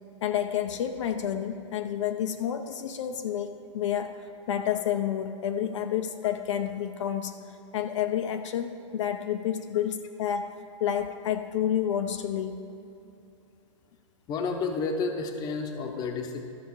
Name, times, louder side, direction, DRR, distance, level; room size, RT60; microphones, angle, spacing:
voice 1, 0.2-4.1 4.5-7.3 7.7-10.5 10.8-12.6, left 9 dB, 65° left, 6 dB, 0.7 m, -29 dB
voice 2, 14.3-16.5, left 4 dB, 25° left, 4 dB, 0.9 m, -31 dB
13.0 x 6.4 x 4.7 m, 2.7 s
hypercardioid pair, 145°, 16 cm